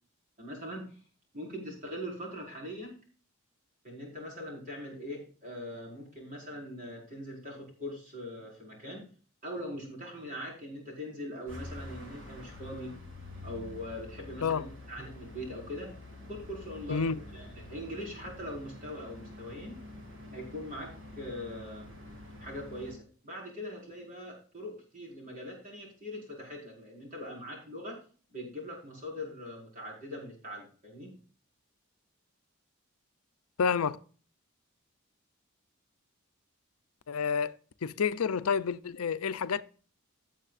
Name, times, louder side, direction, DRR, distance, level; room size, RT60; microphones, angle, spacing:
voice 1, 0.4-1.0 1.3-3.0 3.8-9.1 9.4-12.9 13.4-15.9 16.3-19.8 20.3-20.9 21.2-21.9 22.4-28.0 28.3-31.1, left 1 dB, 40° right, 5.0 m, -41 dB
sound 1, 11.5-22.9, left 1 dB, 75° right, 3.4 m, -47 dB
voice 2, 33.6-34.0 37.1-37.5 37.8-39.6, left 6 dB, 80° left, 0.5 m, -29 dB
16.5 x 7.3 x 2.5 m
head